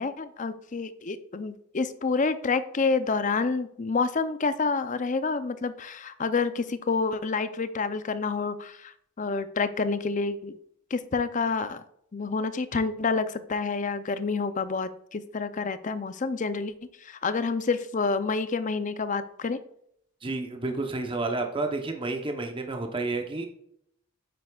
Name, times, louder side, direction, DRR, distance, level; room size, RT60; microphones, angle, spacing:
voice 1, 0.0-10.6 10.9-11.8 12.1-16.7 17.0-19.6, left 4 dB, 35° left, 12 dB, 0.5 m, -28 dB
voice 2, 20.2-23.5, right 3 dB, 25° right, 4 dB, 0.9 m, -30 dB
9.2 x 7.9 x 2.4 m, 0.71 s
head